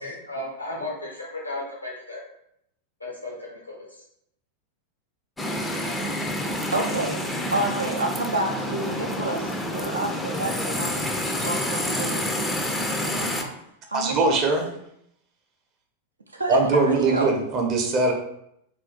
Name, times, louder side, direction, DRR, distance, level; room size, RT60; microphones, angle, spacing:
voice 1, 0.0-2.2 3.0-4.0, left 2 dB, 85° left, -3 dB, 0.6 m, -35 dB
sound 1, 5.4-13.4, left 1 dB, 10° left, 0.4 m, -28 dB
voice 2, 6.7-7.2 7.5-11.1 11.4-13.6 13.9-14.4 16.3-17.3, right 2 dB, 80° right, 3 dB, 0.4 m, -29 dB
voice 3, 13.9-14.7 16.5-18.1, right 3 dB, 35° right, 2 dB, 0.6 m, -21 dB
2.5 x 2.3 x 3.6 m, 0.75 s
figure-of-eight pair, 90°, 0 cm